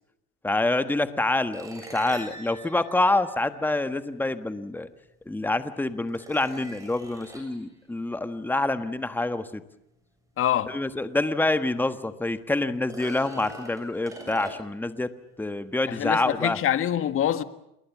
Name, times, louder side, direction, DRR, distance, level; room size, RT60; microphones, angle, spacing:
voice 1, 0.4-4.9 5.3-9.6 10.7-15.1 15.4-16.6, left 2 dB, 5° left, 1.4 m, -26 dB
sound 1, 1.5-4.0 5.2-5.3 6.1-7.6 10.9-11.0 11.5-11.6 12.8-14.9, right 1 dB, 10° right, 7.8 m, -43 dB
voice 2, 10.4-10.7 15.9-17.4, left 11 dB, 45° left, 1.6 m, -25 dB
28.0 x 21.5 x 7.3 m
supercardioid pair, 110°, 30 cm